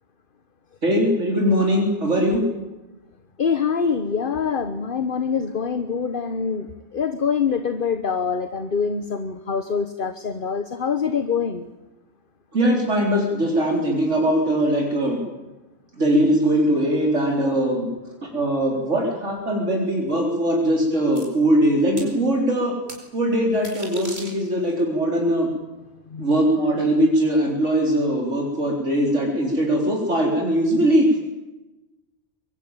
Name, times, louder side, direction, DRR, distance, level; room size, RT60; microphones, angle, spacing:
voice 1, 0.8-2.4 12.5-15.2 16.0-17.9 18.2-22.7 23.1-25.5 26.2-31.1, right 1 dB, 90° right, 0 dB, 4.5 m, -21 dB
voice 2, 3.4-11.7 26.1-26.3, left 6 dB, 50° left, 10 dB, 1.3 m, -25 dB
sound 1, 21.2-21.3 22.0-22.1 22.9-23.0 23.5-24.7, right 1 dB, 60° right, 5.1 m, -37 dB
23.5 x 23.0 x 9.1 m, 1.1 s
omnidirectional pair, 1.2 m